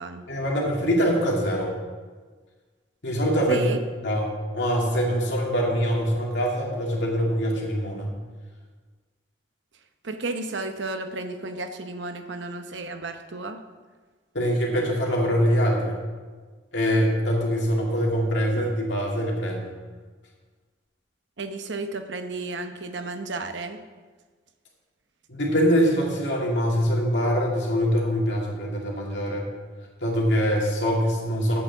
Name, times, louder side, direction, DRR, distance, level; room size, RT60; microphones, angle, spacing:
voice 1, 0.3-1.7 3.0-3.7 4.0-8.1 14.3-16.0 16.7-19.7 25.3-29.5 30.0-31.6, equal, 70° left, -2 dB, 2.4 m, -24 dB
voice 2, 3.5-3.8 10.0-13.6 21.4-23.8, right 3 dB, 80° right, 7 dB, 0.9 m, -33 dB
8.3 x 6.9 x 7.1 m, 1.4 s
head